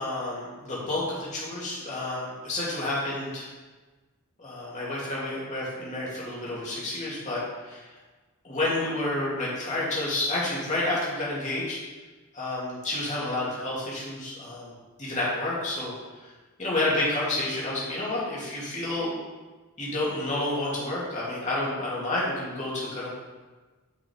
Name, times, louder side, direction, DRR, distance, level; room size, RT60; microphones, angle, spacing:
voice 1, 0.0-3.5 4.4-7.8 8.4-11.8 12.3-14.7 15.0-15.9 16.2-16.3 16.6-19.1 19.8-23.1, left 2 dB, 35° left, -7 dB, 2.6 m, -30 dB
10.5 x 6.0 x 3.4 m, 1.3 s
head